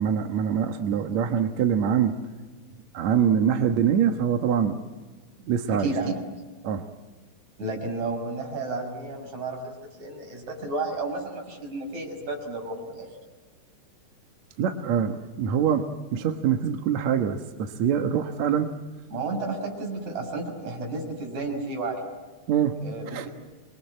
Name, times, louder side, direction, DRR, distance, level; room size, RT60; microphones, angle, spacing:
voice 1, 0.0-2.2 2.9-4.8 5.5-5.9 6.6-6.8 14.6-18.8 22.5-22.8 23.1-23.3, right 8 dB, 65° right, 5 dB, 1.9 m, -24 dB
voice 2, 5.7-6.2 7.6-13.1 19.1-22.0 22.8-23.3, right 2 dB, 45° right, 2 dB, 7.1 m, -32 dB
27.5 x 23.0 x 8.7 m, 1.3 s
omnidirectional pair, 4.6 m